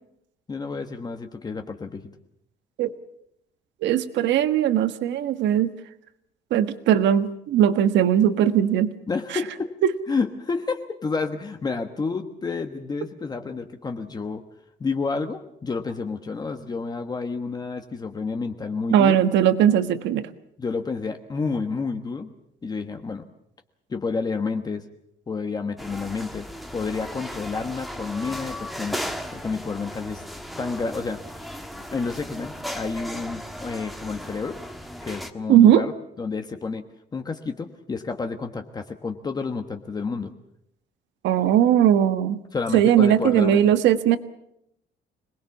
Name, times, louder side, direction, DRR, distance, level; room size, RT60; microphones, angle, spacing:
voice 1, 0.5-2.0 9.1-9.7 10.1-14.4 14.8-19.2 20.6-22.3 22.6-23.3 23.9-24.8 25.3-26.5 26.7-29.0 29.3-30.2 30.6-31.2 31.9-34.6 35.0-35.9 36.2-36.9 37.1-40.3 42.5-43.7, left 4 dB, 20° left, 6 dB, 1.3 m, -30 dB
voice 2, 3.8-5.7 6.5-8.9 18.9-20.3 35.5-35.8 41.2-42.4 42.7-44.2, right 10 dB, 80° right, 11 dB, 1.5 m, -19 dB
sound 1, 25.8-35.3, equal, ahead, 1.5 m, -36 dB
26.0 x 20.5 x 7.2 m, 0.76 s
cardioid pair, 165°, 19 cm